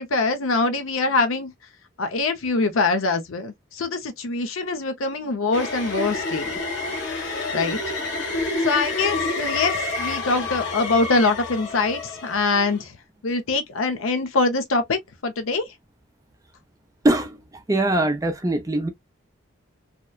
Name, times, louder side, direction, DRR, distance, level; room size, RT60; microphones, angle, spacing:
voice 1, 0.0-1.5 2.0-6.5 7.5-7.8 8.6-13.0 13.2-15.7, left 3 dB, 85° left, 0.6 m, -23 dB
sound 1, 5.5-12.8, left 3 dB, 65° left, 1.2 m, -28 dB
voice 2, 17.0-17.4 17.7-18.9, right 1 dB, 15° right, 0.4 m, -21 dB
2.9 x 2.1 x 2.2 m
head